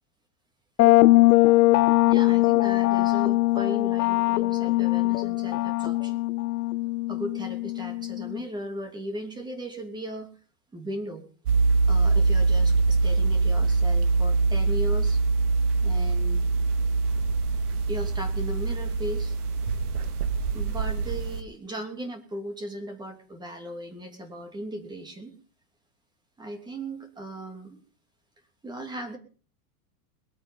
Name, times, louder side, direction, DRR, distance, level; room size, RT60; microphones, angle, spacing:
sound 1, 0.8-8.4, left 19 dB, 75° left, 0.8 m, -21 dB
voice 1, 2.1-6.2 7.1-10.3 10.7-11.2 11.9-15.2 15.8-16.5 17.9-19.3 20.5-25.4 26.4-27.8 28.6-29.2, right 1 dB, 10° right, 5 dB, 3.0 m, -37 dB
sound 2, 11.5-21.4, right 3 dB, 75° right, 2.5 m, -24 dB
22.0 x 8.9 x 5.4 m, 0.40 s
supercardioid pair, 155°, 45 cm